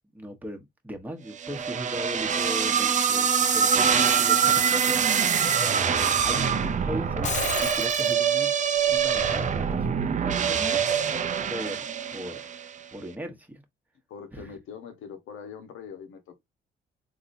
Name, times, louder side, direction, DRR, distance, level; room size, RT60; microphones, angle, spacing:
voice 1, 0.1-5.2 6.2-7.3 7.6-8.5 8.8-10.8 11.5-11.8 12.1-12.5 12.9-13.6 14.3-14.5, equal, 10° right, 1.1 m, -38 dB
sound 1, 1.4-12.7, right 7 dB, 40° right, 0.5 m, -24 dB
voice 2, 5.9-6.8 10.5-10.9 14.1-16.4, left 7 dB, 90° left, 1.1 m, -43 dB
Shatter, 7.0-8.1, left 6 dB, 40° left, 0.6 m, -32 dB
3.9 x 2.8 x 2.6 m
cardioid pair, 90°, 20 cm